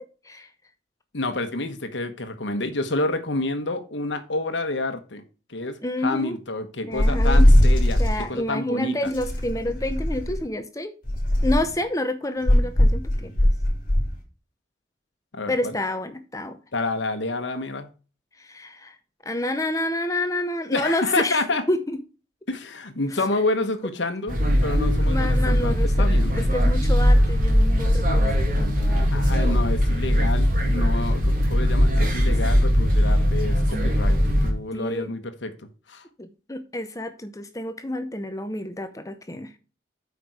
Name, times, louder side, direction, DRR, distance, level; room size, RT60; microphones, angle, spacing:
voice 1, 1.1-5.2 5.5-9.1 15.3-15.7 16.7-17.9 20.7-21.6 22.5-26.3 29.1-35.5 35.9-36.0, left 2 dB, 75° left, 1.1 m, -29 dB
voice 2, 5.8-6.4 6.8-7.5 8.0-10.9 11.4-13.3 15.5-16.6 18.4-19.0 19.2-22.0 23.1-23.2 25.0-29.3 34.7-35.1 36.2-39.5, left 1 dB, 15° left, 0.7 m, -29 dB
sound 1, 7.0-8.2 9.1-10.4 11.0-11.7 12.5-14.1, left 1 dB, 45° left, 3.0 m, -19 dB
sound 2, 24.3-34.5, equal, 45° right, 2.5 m, -20 dB
8.4 x 5.3 x 4.7 m
head